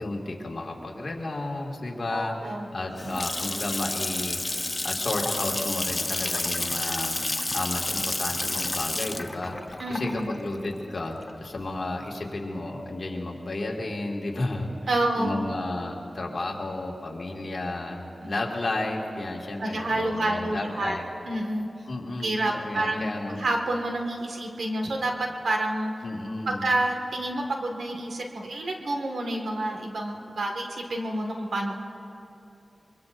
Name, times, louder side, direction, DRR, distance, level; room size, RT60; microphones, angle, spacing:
voice 1, 0.0-7.2 7.5-14.7 15.2-21.1 21.9-23.4 26.0-26.6, left 2 dB, 55° left, -1 dB, 2.1 m, -32 dB
voice 2, 2.1-2.7 3.0-3.2 9.8-10.4 14.9-15.5 18.2-18.3 19.6-21.0 21.3-21.7 22.2-23.1 23.4-25.9 26.5-31.7, right 1 dB, 80° right, 1 dB, 1.8 m, -28 dB
Water tap faucet / Sink (filling or washing) / Splash splatter, 2.7-11.6, left 2 dB, 25° left, 0.6 m, -30 dB
23.5 x 23.0 x 2.6 m, 2.9 s
wide cardioid pair, 80°, 0 cm